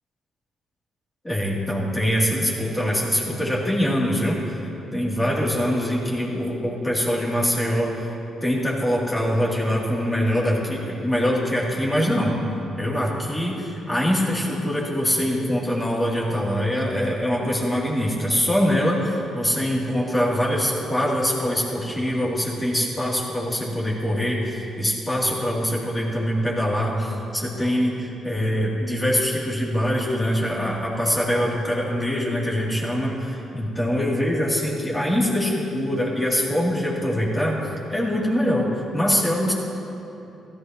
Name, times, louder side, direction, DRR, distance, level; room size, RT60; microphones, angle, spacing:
voice 1, 1.2-4.6 4.9-8.1 8.4-12.3 12.8-37.6 37.9-39.5, equal, 15° left, -5 dB, 3.0 m, -23 dB
16.5 x 14.5 x 3.1 m, 2.8 s
cardioid pair, 90°, 0 cm